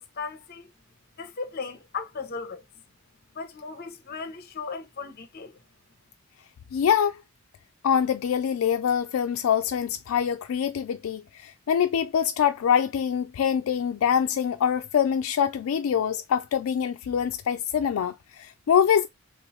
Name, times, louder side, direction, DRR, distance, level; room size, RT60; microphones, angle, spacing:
voice 1, 0.2-0.6 1.2-2.6 3.3-5.6, left 4 dB, 50° left, 0.7 m, -36 dB
voice 2, 6.7-7.2 7.8-19.1, left 8 dB, 80° left, 0.3 m, -24 dB
3.1 x 3.0 x 3.1 m
head